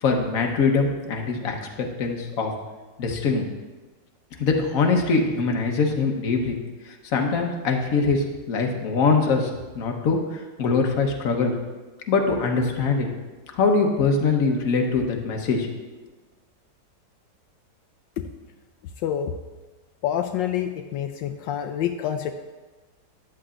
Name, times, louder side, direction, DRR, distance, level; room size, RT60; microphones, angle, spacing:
voice 1, 0.0-1.6 2.0-2.5 3.0-3.4 4.4-6.6 7.1-9.5 9.7-11.5 12.1-13.1 13.5-15.7, left 4 dB, 55° left, 2 dB, 1.4 m, -22 dB
voice 2, 19.0-19.3 20.0-22.3, left 10 dB, 80° left, 6 dB, 1.3 m, -27 dB
13.5 x 10.0 x 2.5 m, 1.2 s
omnidirectional pair, 2.0 m